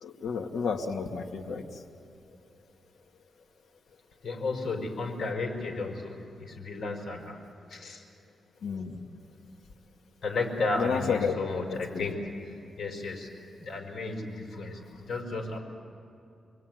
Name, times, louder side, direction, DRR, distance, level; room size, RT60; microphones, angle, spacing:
voice 1, 0.0-1.6 8.6-8.9 10.8-11.3 11.7-12.0, left 5 dB, 85° left, 3 dB, 2.2 m, -31 dB
voice 2, 4.2-7.4 7.7-8.0 10.2-13.3 13.6-15.6, left 3 dB, 60° left, 1 dB, 5.6 m, -33 dB
28.5 x 21.5 x 9.4 m, 2.6 s
wide cardioid pair, 130°, 0 cm